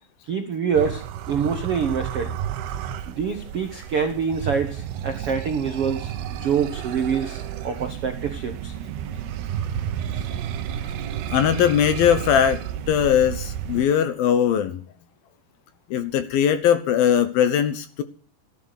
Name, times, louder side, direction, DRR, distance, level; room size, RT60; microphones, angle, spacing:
voice 1, 0.2-2.3 3.1-8.7 10.1-10.2, right 6 dB, 85° right, 6 dB, 1.2 m, -26 dB
sound 1, 0.8-13.9, right 10 dB, 70° right, 3.0 m, -31 dB
voice 2, 11.3-12.6 12.9-14.8 15.9-18.0, left 9 dB, 70° left, 11 dB, 2.5 m, -20 dB
17.0 x 12.5 x 6.7 m, 0.42 s
omnidirectional pair, 5.1 m